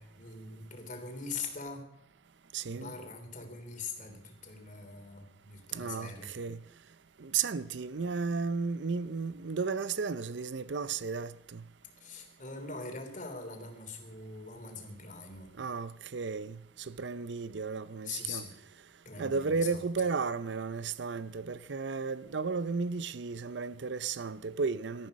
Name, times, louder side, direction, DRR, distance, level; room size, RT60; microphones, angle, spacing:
voice 1, 0.0-1.9 2.7-6.3 12.0-15.5 18.0-18.5 19.0-19.8, left 4 dB, 45° left, 3.3 m, -42 dB
voice 2, 2.5-2.9 5.7-6.6 7.2-11.6 15.6-18.5 19.2-25.1, right 5 dB, 70° right, 0.6 m, -34 dB
18.5 x 13.5 x 5.3 m
head